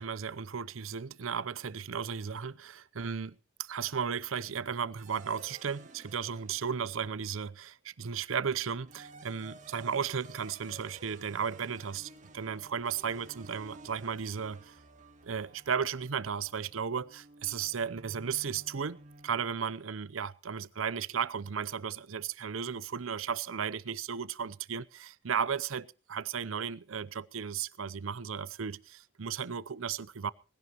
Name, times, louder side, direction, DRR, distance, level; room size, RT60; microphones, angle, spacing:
voice 1, 0.0-14.8 15.2-19.0 19.2-30.3, right 6 dB, 85° right, 0.7 m, -35 dB
sound 1, 5.0-7.6 8.6-19.7, right 3 dB, 40° right, 2.1 m, -54 dB
20.5 x 16.0 x 3.0 m
head